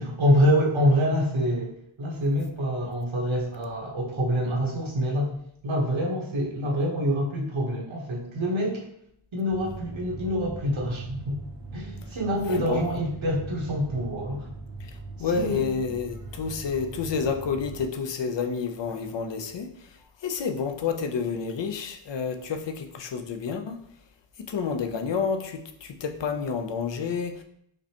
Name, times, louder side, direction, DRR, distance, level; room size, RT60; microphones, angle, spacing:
voice 1, 0.0-5.3 5.6-8.8 9.3-11.4 11.7-14.5 15.2-15.6, equal, 65° right, 1.2 m, -26 dB
sound 1, 9.5-17.9, right 2 dB, 45° right, 0.8 m, -41 dB
voice 2, 12.5-12.8 14.8-14.9 15.2-19.7 20.2-23.8 24.4-27.4, left 5 dB, 60° left, 0.6 m, -29 dB
5.0 x 2.2 x 2.9 m
wide cardioid pair, 55°, 49 cm